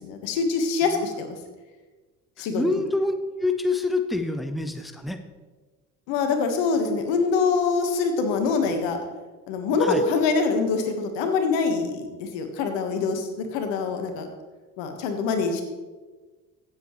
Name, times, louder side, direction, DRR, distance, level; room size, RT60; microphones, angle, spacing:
voice 1, 0.0-1.4 2.4-2.8 6.1-9.0 9.5-14.3 14.8-15.6, left 4 dB, 75° left, 5 dB, 1.6 m, -24 dB
voice 2, 2.4-5.2 9.8-10.0, left 2 dB, ahead, 7 dB, 1.0 m, -26 dB
16.0 x 7.9 x 3.2 m, 1.3 s
hypercardioid pair, 60°, 45 cm